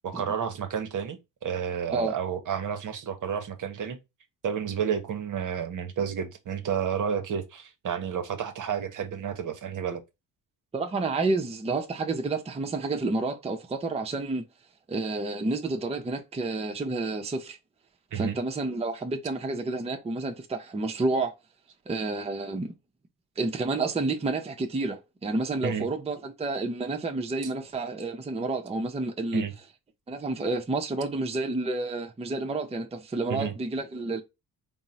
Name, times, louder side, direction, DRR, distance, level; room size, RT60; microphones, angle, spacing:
voice 1, 0.0-4.0 4.4-10.0 18.1-18.4 25.6-25.9 27.4-27.5 29.3-29.5 33.3-33.5, right 7 dB, 55° right, 0.8 m, -31 dB
voice 2, 10.7-14.4 14.9-17.6 18.1-21.3 21.9-22.7 23.4-29.4 30.1-34.2, right 3 dB, 15° right, 0.6 m, -30 dB
3.5 x 2.0 x 4.1 m
cardioid pair, 75°, 38 cm